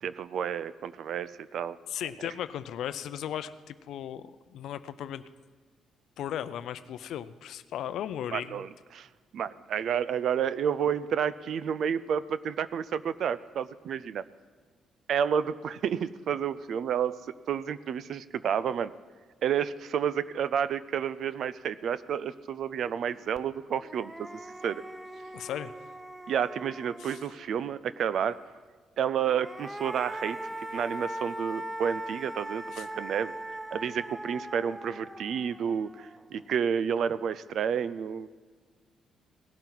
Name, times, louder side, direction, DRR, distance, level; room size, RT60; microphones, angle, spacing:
voice 1, 0.0-1.8 8.3-9.1 9.3-14.2 15.1-17.2 17.5-18.9 19.4-24.8 26.3-28.4 29.0-30.4 30.7-33.3 33.7-38.3, right 8 dB, 65° right, 16 dB, 0.5 m, -30 dB
voice 2, 1.9-5.2 6.2-8.6 25.3-25.7 27.0-27.1 32.7-32.8, left 10 dB, 75° left, 14 dB, 0.5 m, -36 dB
sound 1, 23.4-23.5 23.8-27.5 29.1-36.4, right 1 dB, 5° right, 0.6 m, -40 dB
18.0 x 11.5 x 4.0 m, 1.5 s
cardioid pair, 90°, 0 cm